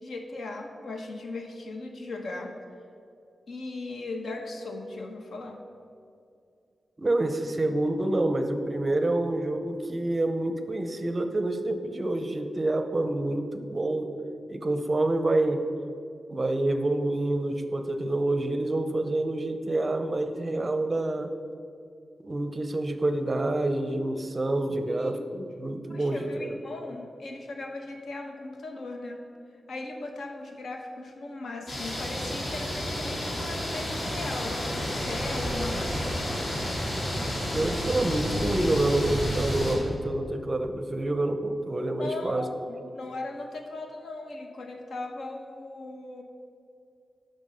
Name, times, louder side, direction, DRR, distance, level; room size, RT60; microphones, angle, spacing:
voice 1, 0.0-2.6 3.5-5.6 24.9-25.4 25.9-29.2 29.7-36.2 42.0-46.2, left 2 dB, 70° left, 3 dB, 1.1 m, -38 dB
voice 2, 7.0-14.1 14.5-15.6 16.3-21.3 22.2-26.5 37.5-42.5, right 2 dB, 25° right, 7 dB, 0.6 m, -27 dB
sound 1, 31.7-39.8, equal, 55° left, 2.6 m, -31 dB
13.0 x 5.4 x 5.5 m, 2.4 s
wide cardioid pair, 170°, 0 cm